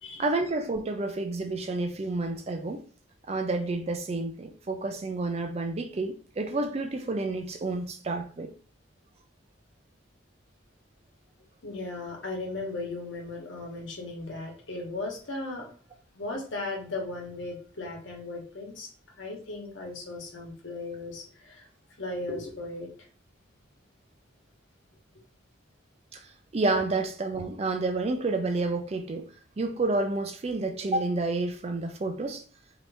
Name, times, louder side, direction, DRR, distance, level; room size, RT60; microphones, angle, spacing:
voice 1, 0.2-2.8 3.3-8.5 26.1-26.2 26.5-29.3 29.6-32.4, right 2 dB, 30° right, 0.4 m, -29 dB
voice 2, 11.6-15.7 16.1-18.9 19.2-21.7 22.0-22.9, left 2 dB, 75° left, 1.2 m, -36 dB
2.9 x 2.7 x 3.3 m
head